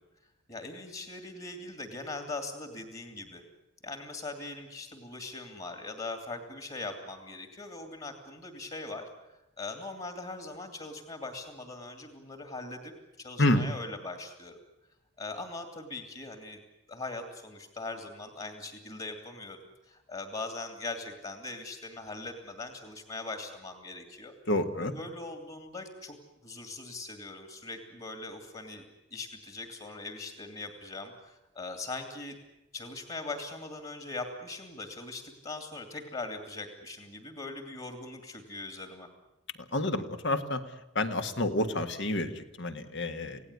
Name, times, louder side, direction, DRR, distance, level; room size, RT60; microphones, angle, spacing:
voice 1, 0.5-3.4 3.8-9.1 9.6-12.9 13.2-14.6 15.2-16.6 16.9-19.6 19.9-24.3 24.8-26.2 26.4-28.8 29.1-32.4 32.7-39.1, left 3 dB, 30° left, 6 dB, 2.5 m, -41 dB
voice 2, 24.5-24.9 39.7-40.6 41.0-43.4, left 1 dB, 55° left, 8 dB, 1.8 m, -29 dB
28.0 x 17.5 x 9.7 m, 0.94 s
head